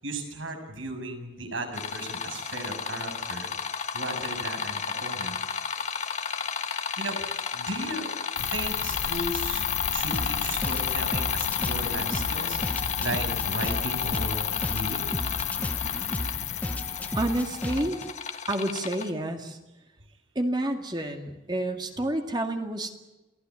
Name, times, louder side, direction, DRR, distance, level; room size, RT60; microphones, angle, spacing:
voice 1, 0.0-3.5 3.9-5.4 7.0-7.2 7.5-8.1 8.4-9.6 9.9-12.6 13.0-15.1 15.7-15.8, right 2 dB, 85° right, 4 dB, 7.0 m, -35 dB
sound 1, 1.7-19.1, left 6 dB, 35° left, 1.7 m, -33 dB
sound 2, 8.4-17.8, left 11 dB, 75° left, 0.8 m, -32 dB
sound 3, 10.1-18.1, equal, 5° left, 0.9 m, -35 dB
voice 2, 17.2-18.0 18.5-19.6 20.4-23.0, right 1 dB, 20° right, 4 dB, 2.1 m, -29 dB
28.5 x 17.5 x 9.7 m, 1.1 s
head